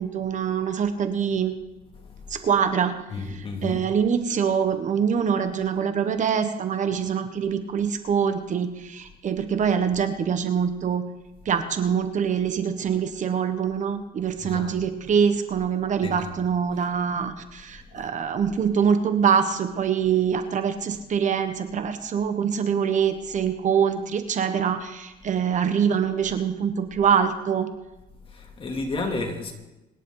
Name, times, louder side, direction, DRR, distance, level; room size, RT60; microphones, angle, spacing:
voice 1, 0.0-1.5 2.3-2.9 3.2-11.0 11.4-27.7, right 7 dB, 45° right, 1.3 m, -24 dB
voice 2, 2.0-2.5 3.1-3.8 14.4-14.7 16.0-16.4 17.9-18.1 28.3-29.5, left 3 dB, 30° left, 2.7 m, -32 dB
27.0 x 11.0 x 4.0 m
cardioid pair, 110°, 17 cm